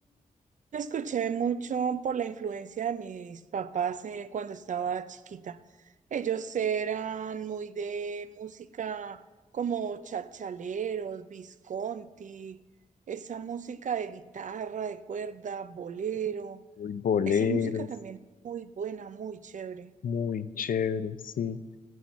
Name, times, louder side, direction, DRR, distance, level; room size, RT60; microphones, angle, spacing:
voice 1, 0.7-5.6 6.1-9.2 9.5-12.6 13.1-16.6 17.3-18.2 18.4-19.9, right 7 dB, 60° right, 13 dB, 0.5 m, -34 dB
voice 2, 16.8-17.9 20.0-21.6, left 7 dB, 80° left, 14 dB, 0.5 m, -28 dB
14.5 x 6.3 x 7.0 m, 1.2 s
wide cardioid pair, 155°, 14 cm